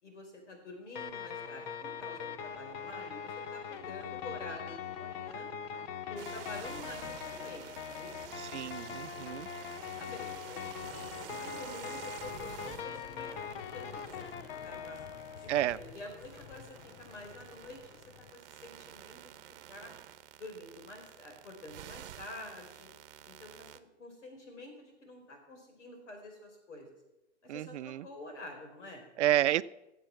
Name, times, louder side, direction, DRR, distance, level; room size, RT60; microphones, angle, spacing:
voice 1, 0.0-5.5 6.0-8.4 9.8-10.7 11.3-14.3 14.6-15.0 15.4-19.4 19.7-19.9 20.4-22.9 23.2-26.9 27.4-29.6, left 2 dB, 85° left, 2 dB, 4.6 m, -48 dB
sound 1, 0.9-15.7, left 7 dB, 55° left, 1.1 m, -42 dB
sound 2, 6.2-23.8, right 12 dB, 55° right, 0.9 m, -50 dB
voice 2, 8.5-9.5 15.5-15.8 27.5-28.1 29.2-29.6, right 13 dB, 75° right, 17 dB, 0.5 m, -30 dB
sound 3, 12.2-18.3, left 10 dB, 40° left, 0.5 m, -53 dB
16.0 x 7.5 x 5.7 m, 0.97 s
hypercardioid pair, 135°, 35 cm